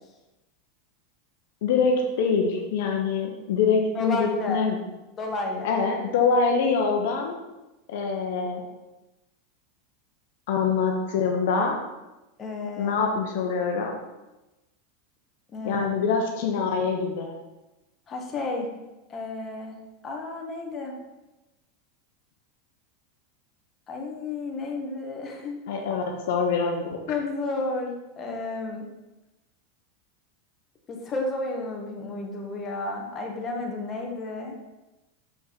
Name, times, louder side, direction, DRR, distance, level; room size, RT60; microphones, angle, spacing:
voice 1, 1.6-4.8 5.6-7.3 7.9-8.6 10.5-11.8 12.8-14.0 15.6-17.3 25.7-27.0, left 5 dB, 70° left, 2 dB, 1.1 m, -24 dB
voice 2, 3.9-4.6 5.2-5.7 12.4-13.0 15.5-16.0 18.1-18.7 19.1-19.8 20.0-20.9 23.9-25.6 27.1-28.9 30.9-34.5, left 2 dB, 30° left, 1 dB, 1.4 m, -32 dB
6.4 x 5.1 x 4.2 m, 1.0 s
hypercardioid pair, 120°, 0 cm